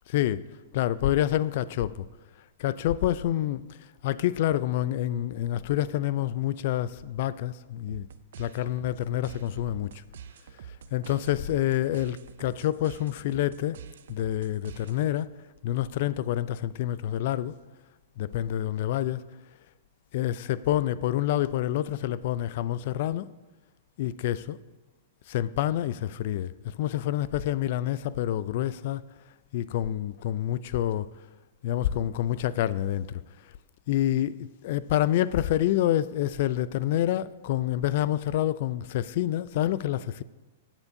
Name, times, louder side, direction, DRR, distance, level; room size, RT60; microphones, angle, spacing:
voice 1, 0.1-0.4 0.7-2.1 2.6-3.6 4.0-8.1 8.4-9.9 10.9-13.8 14.1-15.3 15.6-17.5 18.2-19.2 20.1-23.3 24.0-24.6 25.3-26.5 26.8-29.0 29.5-31.1 31.6-33.2 33.9-40.2, left 12 dB, 50° left, 0.3 m, -27 dB
sound 1, 7.9-15.3, right 8 dB, 70° right, 0.4 m, -46 dB
16.5 x 7.1 x 2.7 m
hypercardioid pair, 160°, 0 cm